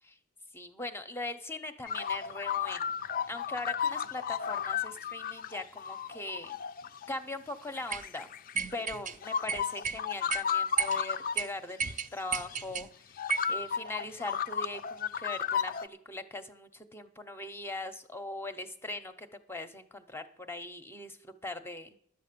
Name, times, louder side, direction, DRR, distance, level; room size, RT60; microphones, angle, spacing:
voice 1, 0.5-2.9 3.3-6.6 7.1-8.3 8.7-11.8 12.1-22.0, left 2 dB, 10° left, 8 dB, 0.7 m, -40 dB
sound 1, 1.9-7.1 7.8-8.8 9.2-11.4 11.8-11.9 12.5-12.6 13.2-15.9, left 7 dB, 40° left, 0.4 m, -33 dB
sound 2, 7.9-8.1 8.5-9.2 9.5-10.0 10.3-10.4 10.8-11.0 11.4-11.5 11.8-12.9 13.3-13.5, right 6 dB, 35° right, 0.5 m, -32 dB
11.5 x 8.2 x 6.7 m, 0.67 s
head